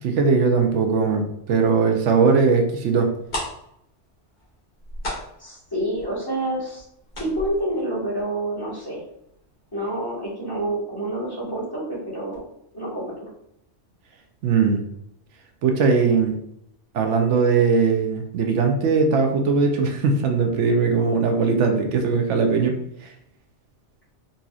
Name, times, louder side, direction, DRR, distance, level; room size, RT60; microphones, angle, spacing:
voice 1, 0.0-3.1 14.4-14.8 15.6-16.4 16.9-22.7 23.0-23.1, right 5 dB, 80° right, 3 dB, 0.9 m, -20 dB
sound 1, 3.3-8.8 9.1-9.2 9.6-9.9 10.2-10.3, left 1 dB, 50° left, 1.4 m, -35 dB
voice 2, 5.4-6.8 7.2-9.0 9.7-12.4 12.7-13.3, right 1 dB, 20° left, -8 dB, 1.6 m, -28 dB
4.1 x 2.6 x 2.3 m, 0.75 s
omnidirectional pair, 1.2 m